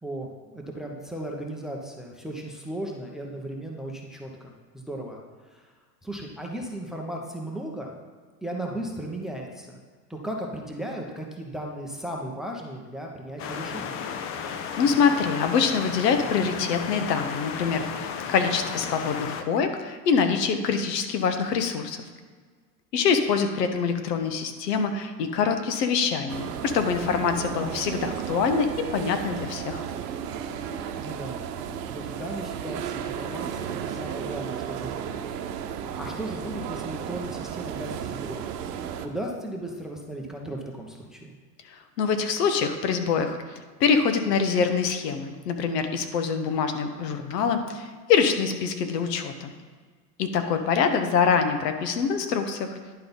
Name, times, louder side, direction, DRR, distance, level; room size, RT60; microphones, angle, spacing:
voice 1, 0.0-5.7 6.0-7.9 8.4-9.8 10.1-14.0 31.0-31.4 31.9-35.2 36.0-38.5 39.0-41.3, right 1 dB, ahead, 0 dB, 0.9 m, -36 dB
sound 1, 13.4-19.4, left 7 dB, 30° left, 0.5 m, -34 dB
voice 2, 14.4-22.0 22.9-29.8 41.7-49.5 50.2-52.8, left 6 dB, 75° left, 7 dB, 1.2 m, -25 dB
sound 2, 26.3-39.1, right 8 dB, 70° right, 0.9 m, -34 dB
10.5 x 3.9 x 5.3 m, 1.5 s
hypercardioid pair, 115°, 49 cm